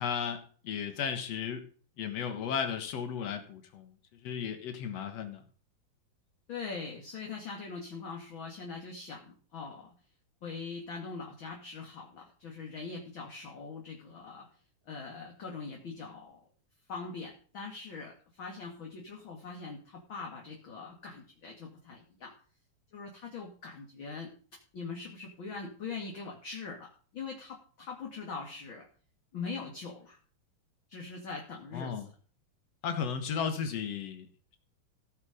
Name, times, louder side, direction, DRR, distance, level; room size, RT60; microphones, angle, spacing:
voice 1, 0.0-1.6 2.0-3.9 4.2-5.4 31.7-32.1 32.8-34.3, left 7 dB, 55° left, 7 dB, 2.0 m, -34 dB
voice 2, 6.5-9.9 10.4-14.5 14.9-16.4 16.9-22.3 22.9-24.3 24.7-28.8 29.3-30.2 30.9-32.0, left 4 dB, 40° left, 0 dB, 2.1 m, -42 dB
16.0 x 7.7 x 5.1 m, 0.41 s
omnidirectional pair, 4.5 m